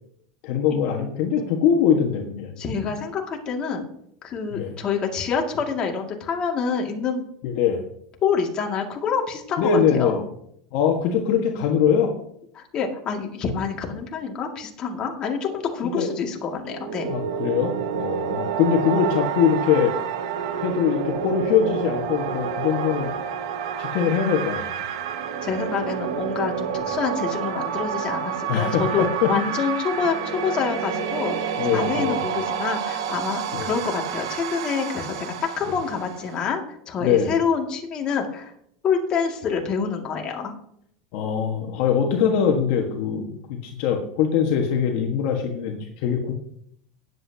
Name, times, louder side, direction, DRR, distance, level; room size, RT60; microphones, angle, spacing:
voice 1, 0.4-2.5 4.5-4.7 7.4-7.8 9.6-10.2 10.7-12.1 15.9-16.1 17.1-19.9 20.6-23.1 23.8-24.8 28.5-29.6 31.6-32.2 33.5-33.7 37.0-37.3 41.1-46.3, left 7 dB, 60° left, 2 dB, 1.5 m, -22 dB
voice 2, 2.6-3.8 4.2-7.3 8.2-10.2 12.5-17.2 25.4-38.5 38.8-40.5, left 6 dB, 35° left, 1 dB, 2.2 m, -27 dB
sound 1, 16.6-36.4, right 7 dB, 85° right, 1.5 m, -29 dB
18.5 x 8.0 x 2.8 m, 0.71 s
supercardioid pair, 130°, 3 cm